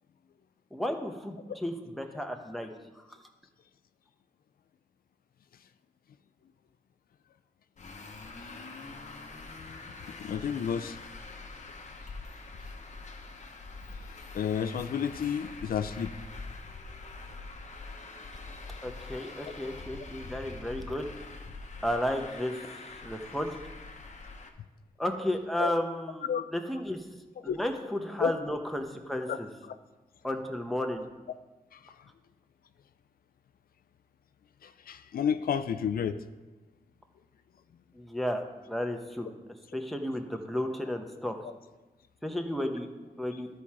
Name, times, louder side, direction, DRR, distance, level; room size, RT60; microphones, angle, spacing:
voice 1, 0.7-2.7 18.8-21.0 21.8-22.6 23.0-23.5 25.0-27.0 27.4-29.5 30.2-31.0 37.9-39.3 39.7-41.4 42.2-42.9 43.2-43.5, left 1 dB, ahead, 3 dB, 0.9 m, -33 dB
Traffic noise roadway noise, 7.8-24.5, left 3 dB, 55° left, 0.9 m, -44 dB
voice 2, 10.2-11.0 13.9-16.1 25.6-25.7 26.2-26.4 27.4-27.6 28.2-28.3 29.3-29.4 31.7-31.9 34.6-36.2, left 8 dB, 85° left, 10 dB, 0.4 m, -31 dB
12.5 x 4.4 x 4.8 m, 1.2 s
wide cardioid pair, 80°, 15 cm